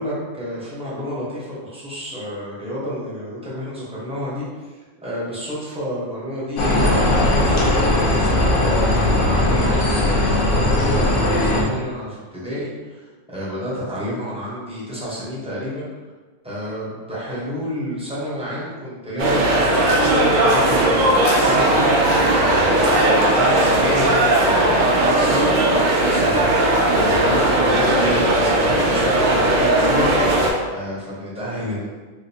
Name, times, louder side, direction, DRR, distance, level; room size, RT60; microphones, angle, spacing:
voice 1, 0.0-15.9 16.4-21.9 22.5-25.5 26.0-30.2 30.7-31.9, equal, 5° right, -8 dB, 0.7 m, -29 dB
sound 1, 6.6-11.6, left 1 dB, 50° left, 0.7 m, -18 dB
sound 2, 19.2-30.5, right 1 dB, 60° right, 0.5 m, -17 dB
Waves surf, 19.4-28.1, left 2 dB, 90° left, 1.1 m, -33 dB
3.5 x 2.5 x 2.7 m, 1.3 s
omnidirectional pair, 1.3 m